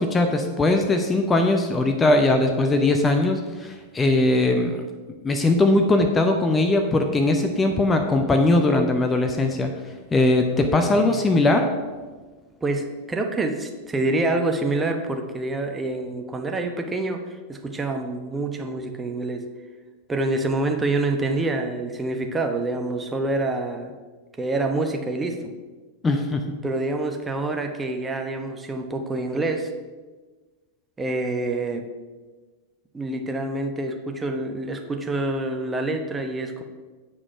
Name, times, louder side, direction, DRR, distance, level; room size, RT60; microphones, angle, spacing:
voice 1, 0.0-4.8 5.2-9.7 10.1-11.6 26.0-26.4, left 2 dB, 15° left, 4 dB, 0.7 m, -20 dB
voice 2, 10.5-11.3 12.6-19.4 20.1-23.9 24.4-25.4 26.6-29.7 31.0-31.8 32.9-36.6, right 2 dB, 15° right, 4 dB, 0.9 m, -27 dB
8.6 x 4.9 x 5.5 m, 1.3 s
figure-of-eight pair, 90°, 0 cm